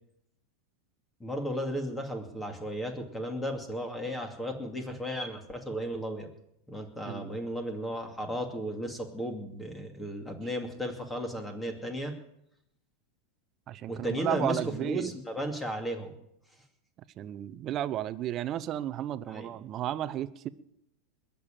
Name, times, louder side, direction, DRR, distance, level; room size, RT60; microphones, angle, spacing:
voice 1, 1.2-6.3 6.7-12.1 13.9-16.1 19.3-19.5, equal, 10° left, 5 dB, 2.5 m, -35 dB
voice 2, 13.7-15.1 17.2-20.5, right 12 dB, 35° right, 16 dB, 0.8 m, -33 dB
21.0 x 7.1 x 9.0 m, 0.78 s
supercardioid pair, 125°, 0 cm